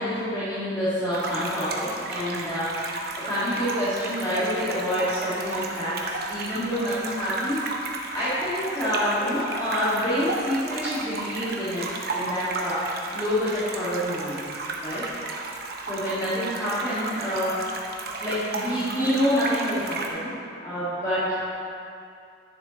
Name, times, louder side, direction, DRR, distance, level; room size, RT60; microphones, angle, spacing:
voice 1, 0.0-2.9 3.2-14.4 14.8-15.0 15.9-17.8 18.0-20.3 20.6-21.4, equal, 20° left, -14 dB, 2.1 m, -27 dB
sound 1, 1.1-20.1, right 3 dB, 55° right, 0.8 m, -34 dB
10.0 x 7.2 x 3.1 m, 2.5 s
head